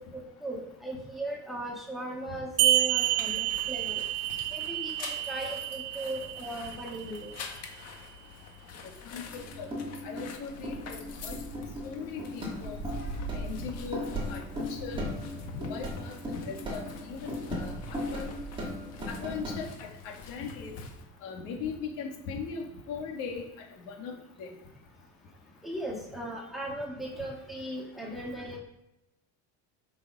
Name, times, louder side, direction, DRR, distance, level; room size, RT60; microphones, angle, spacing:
voice 1, 0.0-4.0 4.5-7.3 25.6-28.6, right 1 dB, ahead, -3 dB, 1.8 m, -38 dB
sound 1, 2.6-7.6, right 14 dB, 70° right, 0.7 m, -29 dB
sound 2, 2.9-21.0, left 6 dB, 50° left, 1.6 m, -47 dB
voice 2, 9.1-9.7 10.0-10.7 11.2-12.8 13.3-14.0 14.3-15.1 15.4-17.7 18.1-18.3 19.1-20.7 21.2-23.5 23.9-24.1 24.4-24.5, left 5 dB, 80° left, 1 dB, 2.5 m, -38 dB
sound 3, 9.3-19.5, equal, 15° right, 3.0 m, -37 dB
8.5 x 6.2 x 6.2 m, 0.88 s
cardioid pair, 170°, 33 cm